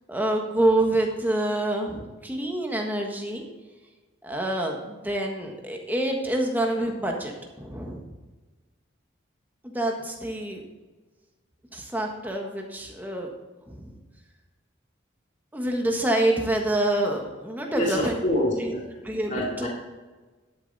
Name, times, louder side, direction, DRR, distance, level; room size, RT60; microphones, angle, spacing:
voice 1, 0.1-3.4 4.2-7.3 7.6-8.0 9.6-10.6 11.7-13.3 13.7-13.9 15.5-18.2 18.6-18.7 19.0-19.7, right 1 dB, 10° right, 1 dB, 1.3 m, -27 dB
voice 2, 17.8-18.8 19.3-19.7, equal, 35° left, -4 dB, 2.5 m, -26 dB
11.5 x 7.2 x 4.1 m, 1.3 s
head